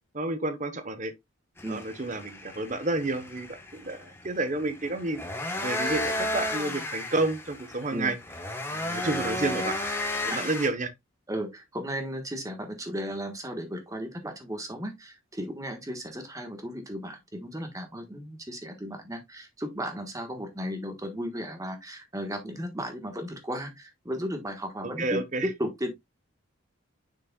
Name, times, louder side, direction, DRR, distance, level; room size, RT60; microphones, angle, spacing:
voice 1, 0.1-1.1 1.7-8.2 8.7-9.8 10.2-10.9 24.8-25.5, right 2 dB, 35° right, 1.0 m, -30 dB
sound 1, 1.6-10.7, left 1 dB, 10° left, 1.1 m, -33 dB
voice 2, 11.3-25.2 25.6-25.9, equal, 15° right, 1.3 m, -35 dB
7.1 x 6.1 x 2.3 m
head